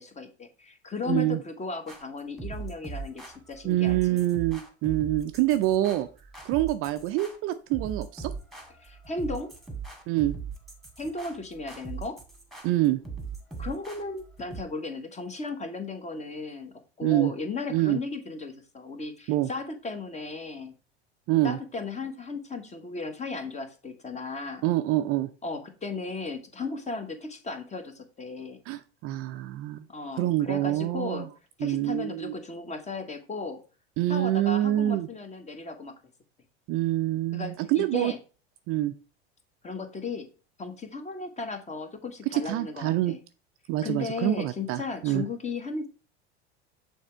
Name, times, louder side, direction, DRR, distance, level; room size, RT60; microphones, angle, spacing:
voice 1, 0.0-4.2 8.8-9.5 11.0-12.2 13.6-20.7 21.4-24.6 25.4-28.6 29.9-31.3 31.6-33.6 34.1-35.9 37.3-38.2 39.6-40.3 40.6-43.2 43.8-45.9, left 3 dB, 20° left, 7 dB, 1.1 m, -35 dB
voice 2, 1.1-1.4 3.6-6.1 6.4-8.3 10.1-10.3 12.6-13.0 17.0-17.3 17.7-18.0 19.3-19.5 21.3-21.6 24.6-25.3 28.7-29.8 30.2-31.3 31.6-32.3 34.0-35.1 36.7-38.1 38.7-38.9 42.3-43.1 43.7-45.2, right 15 dB, 40° right, 10 dB, 0.5 m, -26 dB
sound 1, 1.9-14.6, right 5 dB, ahead, 1.7 m, -40 dB
6.5 x 3.4 x 4.4 m, 0.35 s
hypercardioid pair, 85°, 33 cm